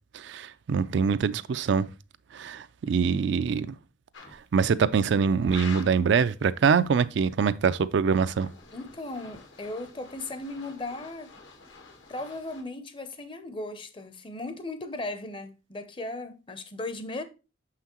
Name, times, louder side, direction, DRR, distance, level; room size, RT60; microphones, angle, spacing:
voice 1, 0.1-1.9 2.3-3.8 4.5-8.5, right 6 dB, 70° right, 0.4 m, -24 dB
sound 1, 4.1-4.4 5.4-6.1 7.9-12.6, left 4 dB, 85° left, 1.4 m, -46 dB
voice 2, 8.7-11.3 12.1-17.2, left 2 dB, 25° left, 0.6 m, -37 dB
6.5 x 5.7 x 2.9 m
head